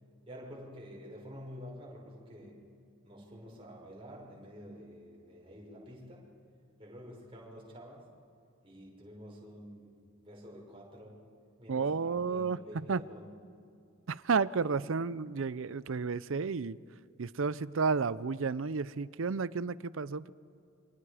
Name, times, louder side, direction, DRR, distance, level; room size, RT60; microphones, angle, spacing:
voice 1, 0.3-2.6 3.0-6.3 6.8-8.1 8.6-11.2 11.6-13.3, equal, 25° right, -3 dB, 5.8 m, -49 dB
voice 2, 11.7-12.6 12.9-13.0 14.1-16.8 17.2-20.3, right 5 dB, 65° right, 18 dB, 0.6 m, -32 dB
29.5 x 25.5 x 5.0 m, 2.5 s
head